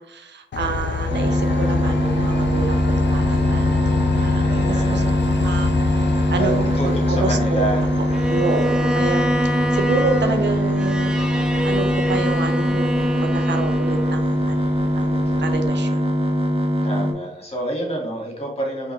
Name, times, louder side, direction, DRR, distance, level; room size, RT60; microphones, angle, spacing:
voice 1, 0.0-5.0 5.4-6.0 6.3-9.3 9.7-14.7 14.9-16.0, right 4 dB, 70° right, 6 dB, 0.6 m, -28 dB
Train, 0.5-15.7, left 4 dB, 70° left, 0.5 m, -27 dB
sound 1, 1.1-17.1, equal, 30° right, 0.8 m, -22 dB
voice 2, 4.4-5.3 6.3-7.8 8.4-8.5 16.8-18.9, right 1 dB, 30° left, -1 dB, 1.6 m, -28 dB
Bowed string instrument, 8.1-14.4, equal, 5° right, 0.5 m, -27 dB
3.7 x 3.4 x 3.1 m, 0.75 s
wide cardioid pair, 90°, 19 cm